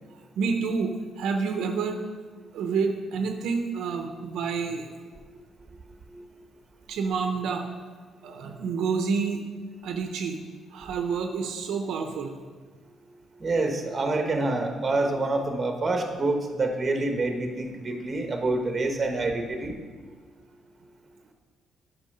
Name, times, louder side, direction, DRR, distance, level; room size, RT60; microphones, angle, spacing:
voice 1, 0.4-2.0 2.5-4.9 6.9-7.7 8.2-9.4 9.8-10.4 10.7-12.4, right 5 dB, 80° right, 5 dB, 0.7 m, -28 dB
voice 2, 13.4-19.8, right 2 dB, 30° right, 4 dB, 1.2 m, -27 dB
8.3 x 5.6 x 5.5 m, 1.5 s
cardioid pair, 90°, 0 cm